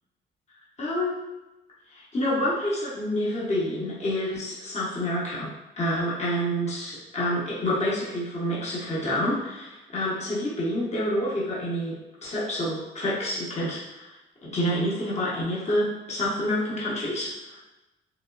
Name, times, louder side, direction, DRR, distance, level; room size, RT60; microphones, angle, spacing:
voice 1, 0.8-1.1 1.9-14.1 14.4-17.6, equal, 35° left, -6 dB, 0.8 m, -28 dB
2.9 x 2.0 x 2.3 m, 0.98 s
cardioid pair, 90°, 20 cm